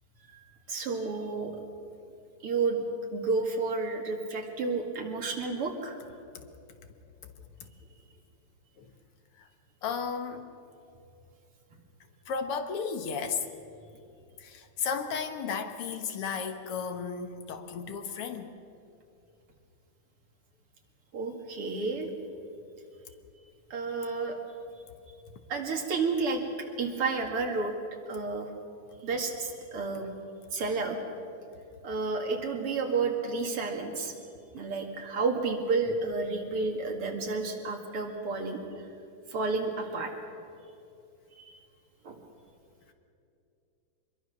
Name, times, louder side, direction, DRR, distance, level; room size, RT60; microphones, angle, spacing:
voice 1, 0.7-1.5 2.4-2.8 3.1-6.0 21.1-22.1 23.7-24.4 25.5-26.4 26.8-27.7 28.1-28.5 29.0-30.1 30.5-31.0 31.8-34.1 34.5-38.6 39.3-40.1 42.0-42.2, right 4 dB, 85° right, 2 dB, 3.1 m, -31 dB
voice 2, 9.8-10.5 12.3-13.5 14.4-18.5, left 6 dB, 90° left, 7 dB, 2.3 m, -34 dB
25.0 x 21.5 x 6.1 m, 2.6 s
omnidirectional pair, 2.4 m